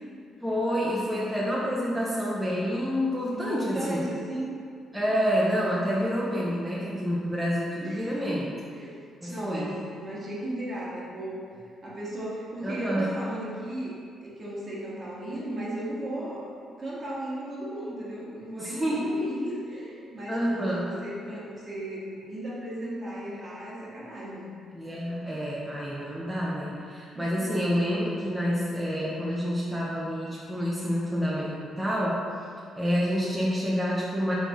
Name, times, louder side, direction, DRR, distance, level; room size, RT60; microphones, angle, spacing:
voice 1, 0.4-4.1 4.9-8.6 9.2-9.8 12.6-13.2 18.6-19.2 20.3-21.0 24.7-32.5 32.8-34.3, equal, 5° right, -6 dB, 0.6 m, -28 dB
voice 2, 3.3-4.5 7.8-9.0 9.3-11.4 11.8-13.9 14.2-16.5 16.8-24.6 27.1-27.4, right 1 dB, 40° right, -6 dB, 1.2 m, -35 dB
3.8 x 3.2 x 3.5 m, 2.3 s
cardioid pair, 90°, 0 cm